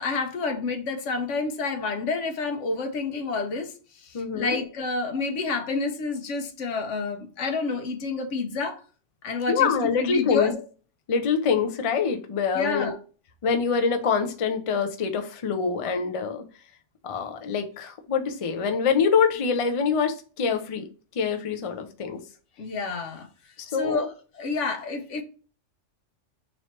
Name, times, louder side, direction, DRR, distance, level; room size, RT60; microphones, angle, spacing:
voice 1, 0.0-8.8 9.2-10.5 12.5-13.0 22.6-23.3 23.7-24.1 24.3-25.2, left 4 dB, 80° left, 1.0 m, -29 dB
voice 2, 4.1-4.6 9.5-10.5 11.1-12.9 13.4-16.4 17.0-20.9 21.1-22.2 23.7-24.1, left 6 dB, 50° left, 0.4 m, -25 dB
3.1 x 3.0 x 4.2 m
omnidirectional pair, 1.2 m